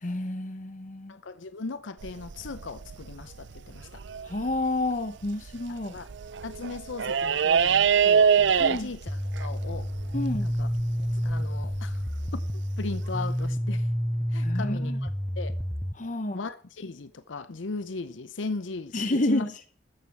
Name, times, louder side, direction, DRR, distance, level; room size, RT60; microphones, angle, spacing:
voice 1, 0.0-1.1 4.2-6.0 8.6-8.9 10.1-10.5 14.4-15.0 16.0-16.4 18.9-19.5, left 1 dB, 40° left, 0.9 m, -29 dB
voice 2, 1.1-4.0 5.7-6.1 6.4-9.9 10.4-10.7 11.2-12.0 12.3-12.4 12.8-13.9 14.3-15.1 15.4-15.5 16.3-19.5, left 3 dB, 80° left, 0.7 m, -37 dB
sound 1, 2.0-4.6 5.2-5.5 6.0-12.4 13.5-13.6, right 7 dB, 70° right, 0.5 m, -25 dB
sound 2, 9.1-15.9, equal, ahead, 0.5 m, -29 dB
13.5 x 9.1 x 6.0 m
head